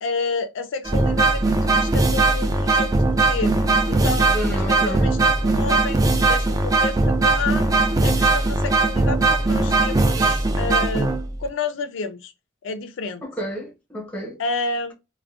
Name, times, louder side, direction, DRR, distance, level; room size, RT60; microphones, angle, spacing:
voice 1, 0.0-12.3 12.6-13.2 14.4-14.9, left 4 dB, 70° left, 0.4 m, -30 dB
sound 1, 0.9-11.5, right 3 dB, 20° right, 0.3 m, -19 dB
voice 2, 4.3-5.1 13.2-14.4, equal, 5° left, 0.8 m, -30 dB
3.4 x 2.1 x 2.3 m
head